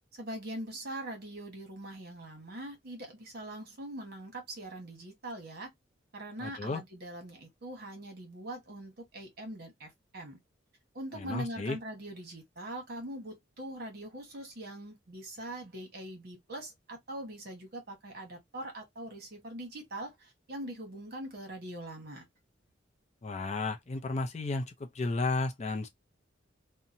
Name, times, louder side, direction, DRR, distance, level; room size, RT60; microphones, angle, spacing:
voice 1, 0.1-5.7 6.1-10.4 10.9-22.3, right 1 dB, 55° right, 1.1 m, -42 dB
voice 2, 6.4-6.8 11.1-11.8 23.2-25.9, left 3 dB, 35° left, 0.5 m, -33 dB
2.8 x 2.1 x 2.5 m
head